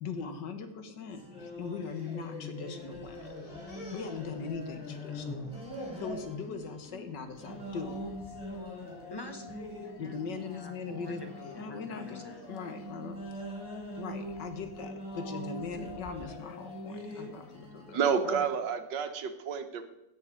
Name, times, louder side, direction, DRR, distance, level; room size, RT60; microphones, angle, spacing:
voice 1, 0.0-3.4 3.9-5.5 6.0-8.0 10.0-11.2 11.6-13.3 14.0-18.5, left 5 dB, 80° left, 8 dB, 1.8 m, -40 dB
sound 1, 1.1-18.1, equal, 5° right, 4.5 m, -43 dB
sound 2, 1.7-2.7 3.0-4.9 5.2-6.3 6.8-7.2 7.5-7.7 8.5-8.9 9.4-9.8 10.7-12.9, equal, 55° left, 3.3 m, -47 dB
sound 3, 7.4-17.6, left 11 dB, 40° left, 3.1 m, -53 dB
voice 2, 9.1-12.4, left 1 dB, 15° left, 5 dB, 1.0 m, -47 dB
voice 3, 17.9-19.8, right 7 dB, 80° right, 8 dB, 1.6 m, -29 dB
16.5 x 6.6 x 4.9 m, 0.94 s
omnidirectional pair, 1.9 m